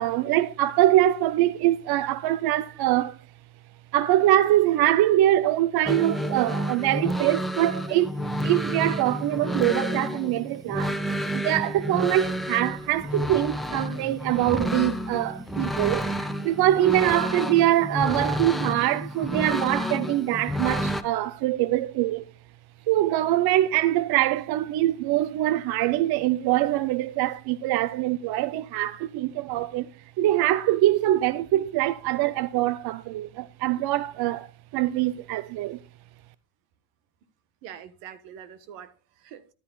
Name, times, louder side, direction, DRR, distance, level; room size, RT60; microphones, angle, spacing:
voice 1, 0.0-3.2 3.9-11.0 11.3-22.3 22.9-35.8, right 14 dB, 60° right, 0.7 m, -24 dB
sound 1, 5.8-21.0, equal, ahead, 0.8 m, -30 dB
voice 2, 37.6-39.5, right 9 dB, 80° right, 1.5 m, -44 dB
13.5 x 11.0 x 2.3 m
supercardioid pair, 110°, 43 cm